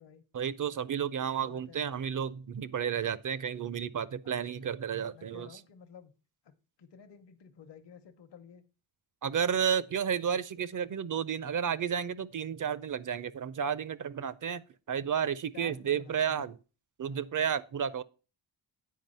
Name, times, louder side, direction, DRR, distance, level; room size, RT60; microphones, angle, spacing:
voice 1, 0.3-5.5 9.2-14.6 14.9-16.6 17.0-18.0, right 8 dB, 45° right, 0.5 m, -32 dB
voice 2, 1.3-1.8 4.2-4.7 5.1-6.1 6.4-8.6 15.5-16.5 17.0-17.3, left 7 dB, 65° left, 1.0 m, -53 dB
9.3 x 4.8 x 5.4 m
wide cardioid pair, 120°, 46 cm